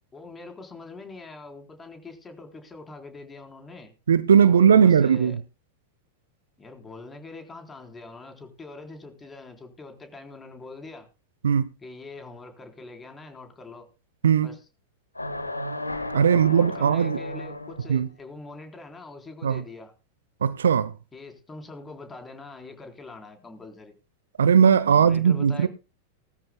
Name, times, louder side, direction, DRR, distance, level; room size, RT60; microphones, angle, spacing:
voice 1, 0.1-3.9 4.4-5.4 6.6-11.1 11.8-13.9 14.4-14.6 16.3-19.9 21.1-24.0 24.9-25.7, left 3 dB, 15° left, 3.8 m, -43 dB
voice 2, 4.1-5.4 11.4-11.7 14.2-14.5 16.1-17.2 17.9-18.1 19.4-19.6 20.4-20.9 24.4-25.7, right 7 dB, 65° right, 0.8 m, -18 dB
sound 1, 15.1-18.0, left 1 dB, 85° left, 1.3 m, -34 dB
20.0 x 13.5 x 2.3 m
figure-of-eight pair, 90°, 0 cm